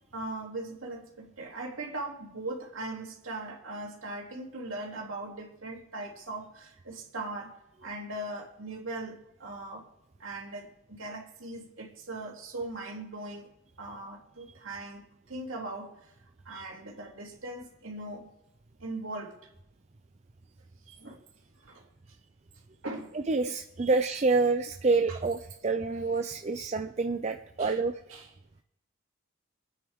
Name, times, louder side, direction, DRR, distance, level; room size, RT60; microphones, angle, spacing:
voice 1, 0.1-7.5 7.8-9.9 10.2-13.5 13.8-16.1 16.4-18.3 18.8-19.4 21.0-21.2 21.6-21.9 22.8-23.1 25.1-25.2 27.6-27.8 28.1-28.3, right 2 dB, 70° right, 2.9 m, -39 dB
voice 2, 23.1-28.0, right 3 dB, 30° right, 0.5 m, -28 dB
25.0 x 9.6 x 3.6 m
head